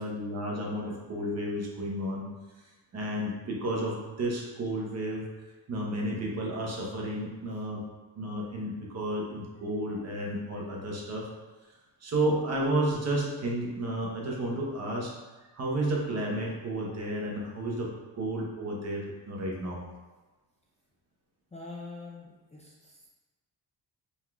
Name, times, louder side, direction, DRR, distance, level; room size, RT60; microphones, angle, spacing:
voice 1, 0.0-2.2 2.9-5.2 5.7-7.8 8.2-11.3 12.0-15.1 15.5-17.9 18.2-19.8, right 1 dB, 40° right, -2 dB, 0.9 m, -32 dB
voice 2, 21.5-23.1, left 3 dB, 15° left, -4 dB, 0.4 m, -45 dB
5.3 x 3.7 x 2.3 m, 1.2 s
cardioid pair, 145°, 40 cm